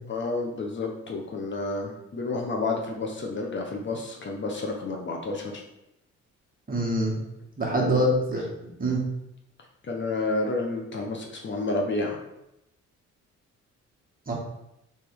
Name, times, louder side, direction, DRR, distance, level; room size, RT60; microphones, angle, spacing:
voice 1, 0.1-5.6 7.7-8.0 8.3-8.4 9.8-12.2, left 3 dB, 40° left, 1 dB, 0.8 m, -30 dB
voice 2, 6.7-7.1 7.6-8.5 8.8-9.0 14.3-14.4, right 1 dB, 30° right, -2 dB, 1.4 m, -24 dB
3.4 x 3.2 x 4.5 m, 0.86 s
cardioid pair, 90°, 30 cm